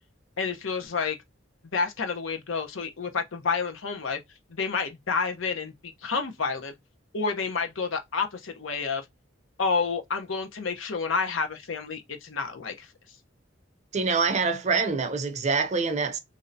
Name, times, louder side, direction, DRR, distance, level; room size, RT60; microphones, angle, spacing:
voice 1, 0.4-1.2 1.7-4.2 4.5-6.7 7.1-9.1 9.6-12.9, left 5 dB, 90° left, 0.8 m, -29 dB
voice 2, 13.9-16.2, right 4 dB, 35° right, 0.6 m, -25 dB
3.2 x 2.6 x 2.6 m
head